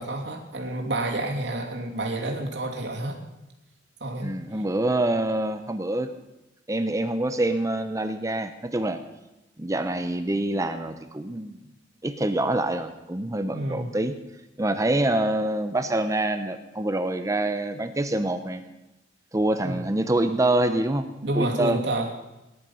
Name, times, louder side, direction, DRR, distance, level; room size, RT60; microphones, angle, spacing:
voice 1, 0.0-3.2 4.0-4.3 13.5-13.9 19.6-19.8 21.2-22.1, right 2 dB, 65° right, 0 dB, 2.7 m, -29 dB
voice 2, 4.2-6.1 6.7-9.0 9.6-11.6 12.0-14.1 14.6-18.6 19.3-21.1 21.3-21.8, right 1 dB, 15° right, 9 dB, 0.8 m, -26 dB
19.0 x 10.5 x 5.6 m, 0.98 s
head